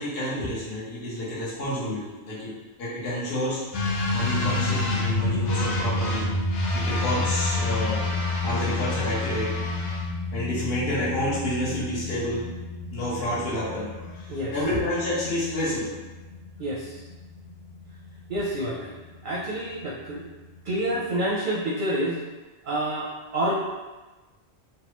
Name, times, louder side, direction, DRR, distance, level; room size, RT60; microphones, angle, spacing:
voice 1, 0.0-2.5 2.8-3.6 4.1-6.3 6.7-8.1 8.4-9.5 10.3-12.5 12.9-15.9, left 1 dB, 60° left, -9 dB, 1.2 m, -29 dB
sound 1, 3.7-21.2, left 2 dB, 80° left, 0.9 m, -30 dB
voice 2, 16.6-17.0 18.3-18.9 19.2-20.3 20.6-22.2 22.6-23.5, right 1 dB, 55° right, -5 dB, 0.6 m, -28 dB
3.2 x 2.2 x 3.0 m, 1.2 s
omnidirectional pair, 1.2 m